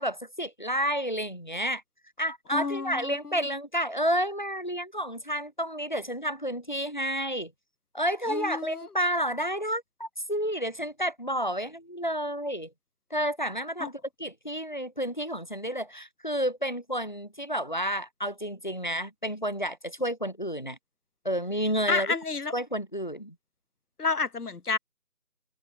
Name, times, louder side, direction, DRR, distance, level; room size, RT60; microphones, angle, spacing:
voice 1, 0.0-1.8 2.2-7.5 7.9-12.7 13.1-20.8 21.2-22.1 22.5-23.3, equal, 30° left, 1.2 m, -30 dB
voice 2, 2.5-3.5 8.3-8.9 13.8-13.9 21.9-22.5 24.0-24.8, left 4 dB, 85° left, 1.2 m, -30 dB
figure-of-eight pair, 180°, 44 cm